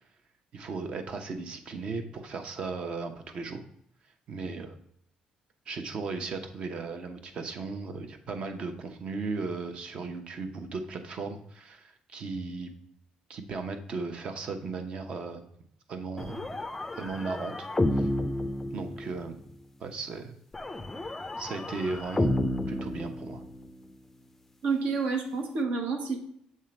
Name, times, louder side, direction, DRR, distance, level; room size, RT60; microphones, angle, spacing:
voice 1, 0.5-3.6 4.3-4.8 5.7-12.7 13.3-15.4 15.9-16.5 17.0-17.7 18.0-18.1 18.7-19.4 19.8-20.4 21.4-22.3 22.7-23.4, right 4 dB, 50° right, 6 dB, 0.9 m, -36 dB
sound 1, 16.2-19.4 20.5-23.8, left 1 dB, 10° left, 0.4 m, -31 dB
voice 2, 24.6-26.2, right 4 dB, 70° right, 3 dB, 1.3 m, -29 dB
7.4 x 3.7 x 4.3 m, 0.73 s
cardioid pair, 130°, 2 cm